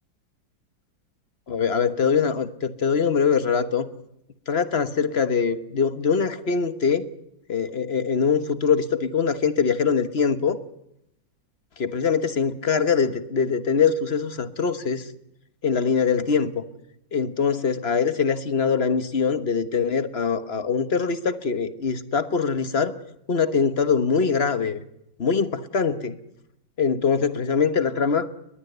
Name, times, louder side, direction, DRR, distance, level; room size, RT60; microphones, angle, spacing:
voice 1, 1.5-3.9 4.5-7.0 7.5-10.6 11.8-15.1 15.6-16.6 17.1-23.0 23.3-24.8 25.2-26.2 26.8-28.3, left 6 dB, 40° left, 11 dB, 1.2 m, -23 dB
22.0 x 20.5 x 8.0 m, 0.81 s
omnidirectional pair, 2.1 m